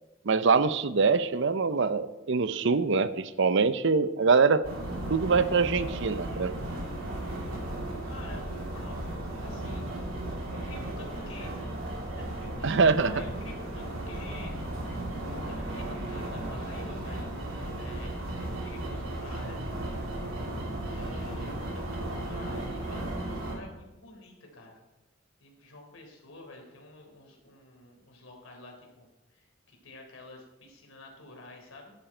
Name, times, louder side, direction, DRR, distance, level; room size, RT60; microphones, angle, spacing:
voice 1, 0.2-4.6 5.1-6.6 12.6-13.1, right 4 dB, 60° right, 13 dB, 0.7 m, -24 dB
sound 1, 4.6-23.6, right 1 dB, 75° right, 3.1 m, -35 dB
voice 2, 7.7-9.9 10.6-14.9 15.5-17.3 17.8-19.6 20.8-24.8 25.4-31.9, left 2 dB, 80° left, 1 dB, 3.7 m, -49 dB
14.0 x 10.5 x 4.4 m, 1.0 s
head